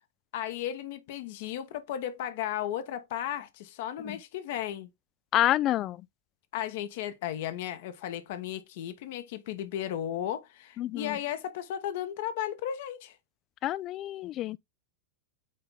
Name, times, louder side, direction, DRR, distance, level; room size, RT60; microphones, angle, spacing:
voice 1, 0.3-4.9 6.5-13.2, left 11 dB, 50° left, 1.0 m, -35 dB
voice 2, 5.3-6.0 10.8-11.2 13.6-14.6, left 14 dB, 35° left, 0.3 m, -28 dB
8.5 x 3.9 x 3.4 m
figure-of-eight pair, 90°, 0 cm